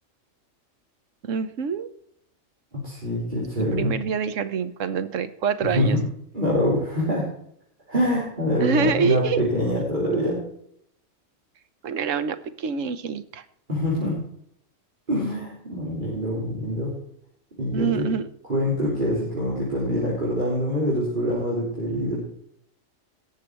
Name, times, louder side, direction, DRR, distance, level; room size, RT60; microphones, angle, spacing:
voice 1, 1.2-1.9 3.7-6.0 8.6-9.4 11.8-13.4 17.7-18.3, right 6 dB, 70° right, 12 dB, 1.2 m, -26 dB
voice 2, 2.8-3.9 5.6-6.0 6.3-7.3 7.9-10.4 13.7-14.2 15.1-16.9 17.6-18.1 18.5-22.2, equal, 35° right, -7 dB, 3.6 m, -25 dB
17.5 x 7.0 x 4.6 m, 0.69 s
omnidirectional pair, 1.4 m